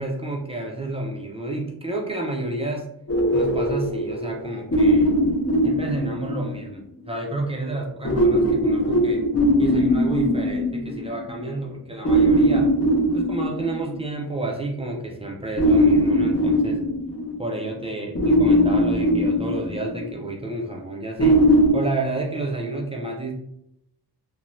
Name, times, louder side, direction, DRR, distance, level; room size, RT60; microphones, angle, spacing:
voice 1, 0.0-2.9 3.3-5.1 5.6-9.3 9.6-12.7 13.1-16.8 17.4-21.4 21.7-23.3, right 2 dB, 15° right, 0 dB, 0.4 m, -30 dB
sound 1, 3.1-6.7 8.0-11.4 12.0-14.2 15.6-17.7 18.1-20.2 21.2-21.7, equal, 35° left, 0.6 m, -20 dB
2.6 x 2.1 x 3.0 m, 0.77 s
wide cardioid pair, 160°, 42 cm